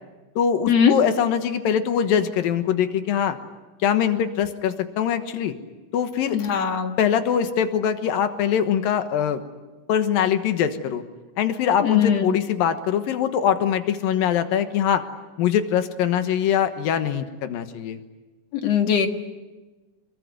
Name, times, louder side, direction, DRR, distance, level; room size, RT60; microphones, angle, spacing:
voice 1, 0.4-3.4 3.8-5.5 5.9-6.4 7.0-9.4 9.9-11.0 11.4-15.0 15.4-18.0, left 8 dB, 90° left, 8 dB, 3.1 m, -22 dB
voice 2, 6.3-6.9 11.8-12.3 18.5-19.1, left 8 dB, 55° left, 5 dB, 2.6 m, -20 dB
27.0 x 22.0 x 9.5 m, 1.2 s
omnidirectional pair, 3.9 m